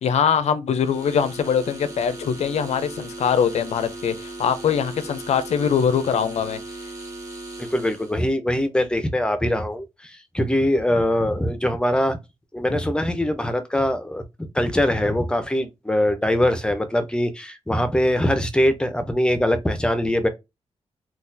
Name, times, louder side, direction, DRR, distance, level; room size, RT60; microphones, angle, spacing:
voice 1, 0.0-6.6, left 7 dB, 75° left, 0.5 m, -22 dB
sound 1, 0.7-8.2, right 2 dB, 25° right, 1.3 m, -37 dB
voice 2, 7.6-12.2 12.5-20.3, left 1 dB, 10° left, 0.5 m, -22 dB
3.9 x 2.3 x 2.6 m
wide cardioid pair, 125°, 11 cm